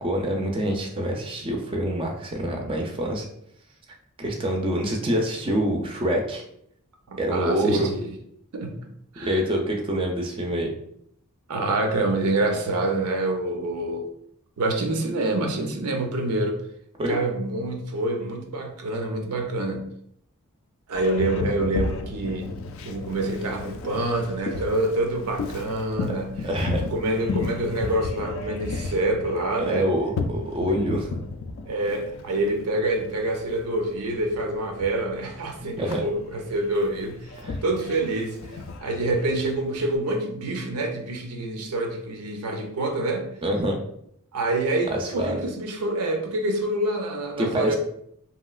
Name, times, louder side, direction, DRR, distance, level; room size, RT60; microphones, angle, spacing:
voice 1, 0.0-3.3 4.2-6.4 7.2-7.9 9.2-10.7 17.0-17.2 22.2-22.3 26.4-26.8 29.6-31.1 35.8-36.0 37.4-37.6 43.4-43.8 44.9-45.5 47.4-47.8, equal, 25° right, 1 dB, 0.4 m, -26 dB
voice 2, 7.3-8.2 8.5-8.9 9.1-9.4 11.5-14.1 14.6-16.6 17.1-19.9 20.9-22.6 22.8-26.4 26.8-29.9 31.7-37.2 37.6-38.4 38.8-43.3 44.3-47.8, right 2 dB, 90° right, 4 dB, 0.5 m, -26 dB
Boat Water vehicle, 20.9-39.9, left 3 dB, 60° left, 0.3 m, -34 dB
2.9 x 2.7 x 2.3 m, 0.71 s
head